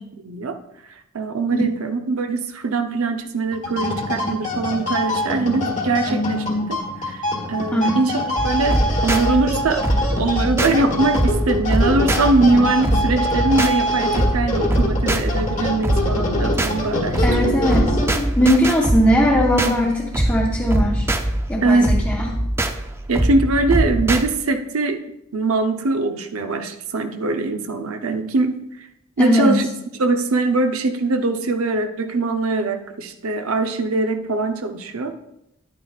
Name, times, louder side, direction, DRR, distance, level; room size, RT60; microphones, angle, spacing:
voice 1, 0.2-0.6 1.1-7.2 7.5-8.2 8.4-9.9 10.2-17.7 21.6-21.9 23.1-25.0 25.3-28.9 29.2-29.7 30.0-35.2, right 3 dB, 85° right, 7 dB, 0.8 m, -22 dB
sound 1, 3.5-18.5, left 1 dB, 35° left, 1.4 m, -25 dB
sound 2, 8.4-24.3, right 1 dB, 10° right, 0.4 m, -23 dB
voice 2, 17.2-18.0 18.4-21.1 21.5-22.4 29.2-29.6, equal, 10° left, -4 dB, 0.8 m, -19 dB
10.0 x 8.7 x 2.4 m, 0.83 s
head